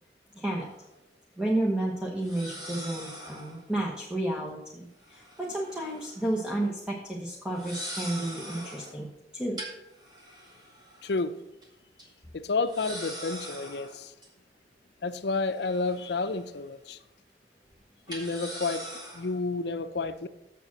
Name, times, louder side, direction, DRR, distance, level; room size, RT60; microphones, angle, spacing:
voice 1, 0.3-0.7 1.4-9.6, right 1 dB, 5° right, -3 dB, 1.0 m, -31 dB
sound 1, 0.6-0.7 2.2-3.6 5.0-6.2 6.5-6.7 7.5-8.9 9.6-11.2 11.6-11.7 12.0-12.1 12.7-14.3 15.1-16.6 16.9-17.0 18.1-19.4, equal, 25° right, 2.1 m, -42 dB
voice 2, 11.0-11.4 12.3-14.1 15.0-17.0 18.1-18.8 19.1-20.3, left 3 dB, 65° left, 12 dB, 0.6 m, -30 dB
7.3 x 7.0 x 6.1 m, 0.89 s
head